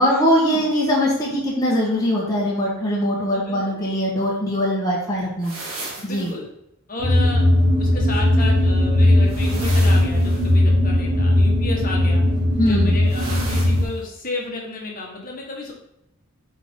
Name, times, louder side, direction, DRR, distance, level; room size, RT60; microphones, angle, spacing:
voice 1, 0.0-5.5 6.0-6.3 12.6-12.9, equal, 15° left, -5 dB, 1.2 m, -21 dB
voice 2, 3.3-3.6 6.0-6.5 6.9-7.4 7.8-12.2 12.6-15.7, left 2 dB, 40° left, -2 dB, 1.3 m, -32 dB
sound 1, 5.4-6.3 9.2-10.5 13.1-13.9, right 2 dB, 80° right, 1.7 m, -35 dB
sound 2, 7.0-13.8, left 1 dB, 55° right, 2.1 m, -18 dB
7.3 x 4.0 x 3.6 m, 0.83 s
head